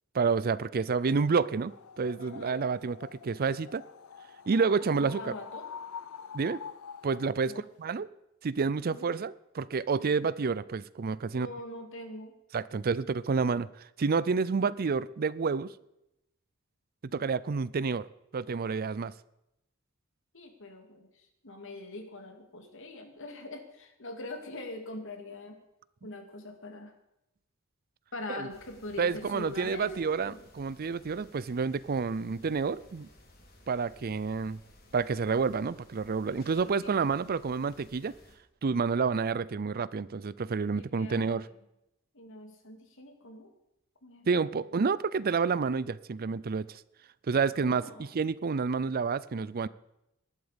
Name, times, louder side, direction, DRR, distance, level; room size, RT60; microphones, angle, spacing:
voice 1, 0.1-3.8 4.5-5.3 6.3-6.6 7.0-8.1 8.4-11.5 12.5-13.7 14.0-15.7 17.1-18.1 18.3-19.1 28.3-28.5 29.0-33.1 33.7-34.6 34.9-38.1 38.6-41.5 44.3-46.8 47.3-49.7, right 5 dB, 45° right, 19 dB, 0.5 m, -29 dB
sound 1, 1.6-7.4, left 7 dB, 85° left, 0.6 m, -46 dB
voice 2, 2.2-2.6 4.9-5.7 7.4-7.7 8.8-9.2 11.3-12.3 20.3-25.6 26.0-26.9 28.1-29.9 36.3-36.9 40.7-41.4 42.1-43.5 44.0-44.4 47.5-48.1, left 2 dB, 65° left, 5 dB, 2.5 m, -43 dB
sound 2, 28.5-38.4, right 1 dB, 45° left, 3.3 m, -53 dB
18.5 x 12.0 x 5.2 m, 0.86 s
head